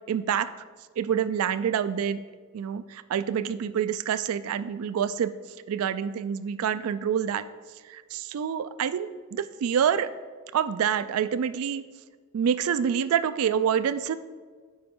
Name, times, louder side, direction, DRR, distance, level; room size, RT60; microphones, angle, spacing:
voice 1, 0.1-0.5 1.0-2.2 2.5-5.3 5.7-7.4 7.9-10.1 10.5-11.8 12.3-14.2, right 8 dB, 90° right, 14 dB, 0.3 m, -27 dB
9.5 x 4.9 x 3.7 m, 1.5 s
head